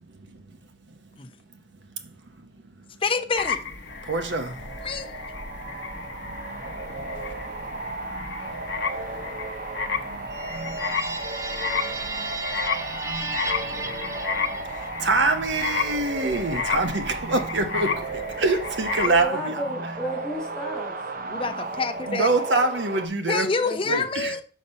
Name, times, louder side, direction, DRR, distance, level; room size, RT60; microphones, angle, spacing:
voice 1, 3.0-3.6 4.8-5.1 21.3-22.3 23.3-24.4, left 4 dB, 30° left, 0.6 m, -27 dB
sound 1, 3.4-19.2, left 5 dB, 85° left, 0.8 m, -32 dB
sound 2, 3.9-23.1, right 3 dB, 50° right, 0.7 m, -35 dB
voice 2, 4.0-4.7 7.0-7.1 14.7-19.6 22.1-23.5 23.8-24.4, right 3 dB, 85° right, 1.0 m, -25 dB
sound 3, 10.3-15.0, right 3 dB, 20° right, 0.4 m, -34 dB
voice 3, 19.0-20.9 23.6-24.0, equal, 5° left, 2.3 m, -32 dB
5.5 x 5.2 x 5.4 m
head